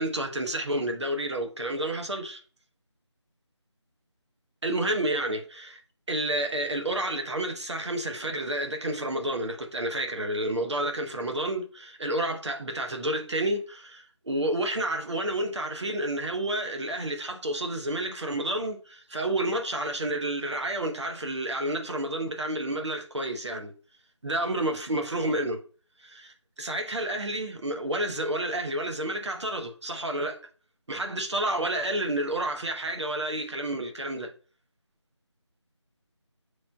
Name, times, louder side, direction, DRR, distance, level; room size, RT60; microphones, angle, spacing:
voice 1, 0.0-2.4 4.6-5.8 6.1-23.7 24.2-25.6 26.0-30.4 30.9-34.3, right 1 dB, 65° right, 0.9 m, -30 dB
6.4 x 3.1 x 2.3 m
figure-of-eight pair, 175°, 16 cm